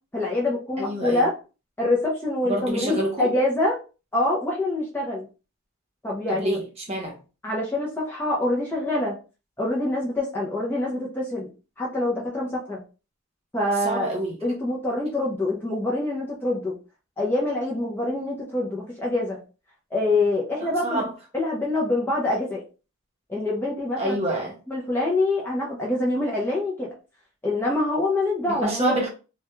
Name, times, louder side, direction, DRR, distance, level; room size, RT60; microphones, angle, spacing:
voice 1, 0.1-1.3 1.8-3.8 4.1-5.3 6.0-6.6 7.4-9.2 9.6-11.5 11.8-12.8 13.5-14.1 14.4-16.8 17.2-19.4 19.9-21.0 21.3-22.6 23.3-24.2 24.7-26.9 27.4-29.0, left 2 dB, 10° left, -4 dB, 0.4 m, -25 dB
voice 2, 0.8-1.3 2.4-3.3 6.3-7.2 13.8-14.4 20.6-21.1 24.0-24.6 28.5-29.1, right 1 dB, 30° right, 0 dB, 0.7 m, -27 dB
2.2 x 2.1 x 2.9 m, 0.33 s
head